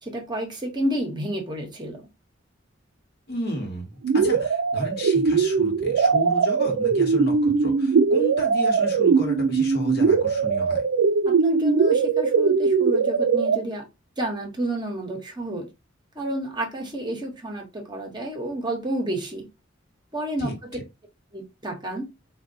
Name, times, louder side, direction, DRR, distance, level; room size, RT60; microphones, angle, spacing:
voice 1, 0.0-2.1 11.2-13.9 14.2-15.7 16.1-19.5 20.1-20.5 21.3-22.1, right 1 dB, 25° right, 0.8 m, -30 dB
voice 2, 3.3-10.8 20.4-20.5, equal, 55° left, 1.1 m, -32 dB
sound 1, 4.0-13.6, right 5 dB, 75° right, 0.4 m, -21 dB
3.9 x 2.2 x 2.6 m
head